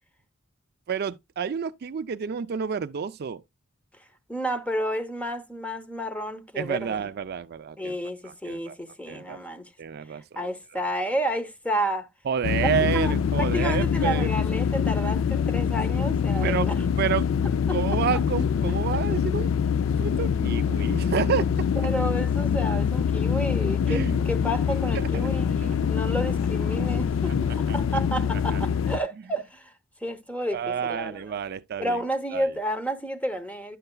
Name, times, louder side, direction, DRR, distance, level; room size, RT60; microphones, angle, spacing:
voice 1, 0.9-3.4 6.6-8.0 8.5-8.7 9.1-9.4 9.8-10.2 10.8-10.9 12.3-14.3 16.4-16.7 17.0-17.3 17.7-19.5 20.0-21.9 23.9-24.2 24.9-25.3 25.6-25.8 27.2-27.3 27.7-27.8 28.5-28.6 30.5-32.0 32.3-32.4, right 7 dB, 55° right, 0.4 m, -29 dB
voice 2, 4.3-7.1 7.8-9.7 10.3-12.1 12.8-16.8 17.7-17.8 21.8-29.7 30.0-31.2 31.8-33.8, equal, 5° left, 0.8 m, -31 dB
sound 1, 12.4-29.0, left 7 dB, 85° left, 0.4 m, -25 dB
10.5 x 6.6 x 2.2 m
head